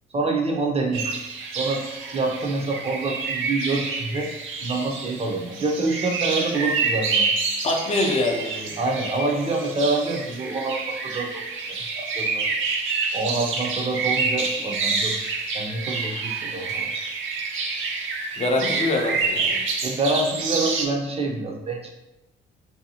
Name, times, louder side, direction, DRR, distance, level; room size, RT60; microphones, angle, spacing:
voice 1, 0.1-1.1 1.6-1.8 2.1-4.3 4.6-7.3 8.8-11.3 11.9-12.4 13.1-15.1 15.5-17.0 19.8-21.9, right 3 dB, 30° right, 1 dB, 0.5 m, -26 dB
sound 1, 0.9-20.9, right 4 dB, 75° right, 0.5 m, -28 dB
voice 2, 7.6-8.7 18.4-19.6, left 2 dB, 35° left, 1 dB, 0.5 m, -24 dB
2.7 x 2.3 x 2.7 m, 0.96 s
cardioid pair, 90°, 20 cm